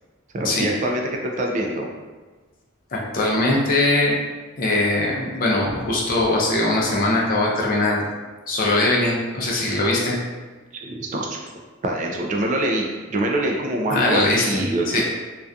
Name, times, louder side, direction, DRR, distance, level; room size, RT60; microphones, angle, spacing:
voice 1, 0.3-1.9 10.7-11.4 11.8-15.0, right 1 dB, 40° right, 1 dB, 0.3 m, -24 dB
voice 2, 2.9-4.1 4.6-8.1 8.5-10.2 13.9-15.0, left 2 dB, 45° left, -3 dB, 0.5 m, -21 dB
2.6 x 2.3 x 2.3 m, 1.3 s
head